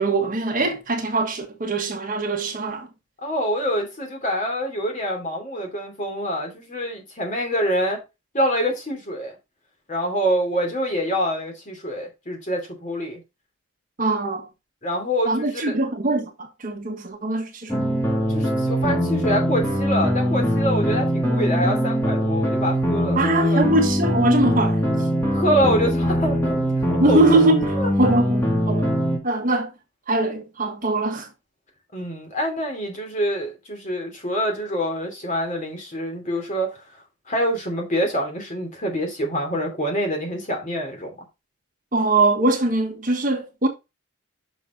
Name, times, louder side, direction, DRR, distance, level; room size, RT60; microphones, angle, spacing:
voice 1, 0.0-2.9 14.0-14.4 15.2-17.8 23.1-25.1 27.0-29.0 29.2-29.7 30.1-31.3 41.9-43.7, right 2 dB, 40° right, 1.4 m, -22 dB
voice 2, 3.2-8.0 8.3-9.3 9.9-13.2 14.8-15.6 18.3-23.6 25.3-27.2 27.8-28.1 31.9-36.8 37.3-41.2, equal, 35° left, 2.8 m, -26 dB
sound 1, 17.7-29.2, equal, 10° left, 2.2 m, -22 dB
6.3 x 6.1 x 3.8 m
head